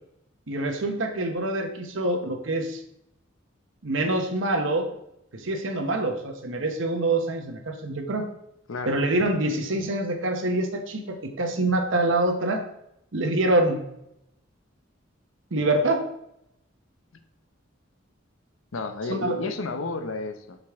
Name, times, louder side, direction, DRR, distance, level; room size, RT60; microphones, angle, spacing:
voice 1, 0.5-2.8 3.8-4.9 5.3-8.3 8.9-12.6 13.1-13.8 15.5-16.1 19.1-19.5, right 2 dB, 70° right, 3 dB, 0.9 m, -25 dB
voice 2, 18.7-20.6, left 3 dB, 85° left, 8 dB, 0.7 m, -31 dB
6.2 x 5.2 x 3.5 m, 0.78 s
head